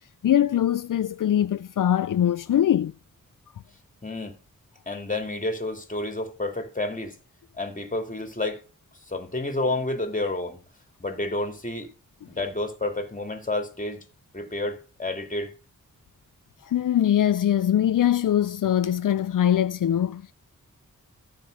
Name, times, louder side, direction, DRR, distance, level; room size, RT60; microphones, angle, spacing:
voice 1, 0.2-2.9 16.6-20.3, left 10 dB, 75° left, 0.5 m, -22 dB
voice 2, 4.0-4.4 4.9-7.2 7.6-8.6 9.1-10.6 11.0-11.9 12.3-14.0 14.3-15.5, left 2 dB, 25° left, 2.3 m, -30 dB
14.0 x 5.2 x 6.5 m
wide cardioid pair, 80°, 33 cm